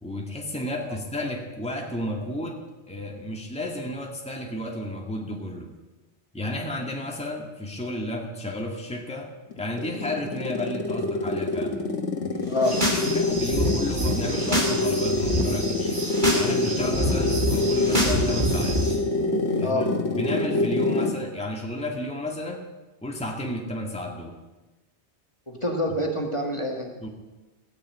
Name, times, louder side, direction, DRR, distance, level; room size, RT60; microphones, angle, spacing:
voice 1, 0.0-5.7 6.3-11.8 12.2-16.0 16.3-18.8 19.6-22.6 23.0-24.4 27.0-27.1, left 1 dB, 5° left, 1 dB, 1.9 m, -32 dB
sound 1, 9.5-21.3, left 2 dB, 80° left, 1.9 m, -26 dB
voice 2, 12.5-12.8 19.6-19.9 25.5-26.9, left 1 dB, 25° left, 1 dB, 2.1 m, -27 dB
sound 2, 12.5-13.1 13.3-14.8 15.0-15.4 15.9-16.5 16.7-18.8, equal, 40° right, 3.0 m, -26 dB
sound 3, 12.6-19.0, right 2 dB, 80° right, 4.5 m, -36 dB
15.5 x 10.0 x 8.7 m, 1.1 s
omnidirectional pair, 1.2 m